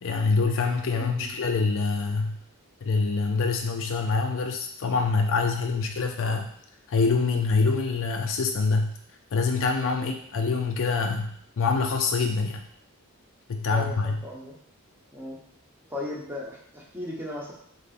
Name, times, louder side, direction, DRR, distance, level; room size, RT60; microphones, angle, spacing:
voice 1, 0.0-2.4 2.8-6.5 6.9-8.9 9.3-12.7 13.5-14.2, left 4 dB, 60° left, 4 dB, 0.4 m, -25 dB
voice 2, 1.0-1.3 9.9-10.2 13.6-14.6 15.1-15.4 15.9-17.5, left 2 dB, 10° right, -3 dB, 1.0 m, -37 dB
3.8 x 3.4 x 4.1 m, 0.65 s
head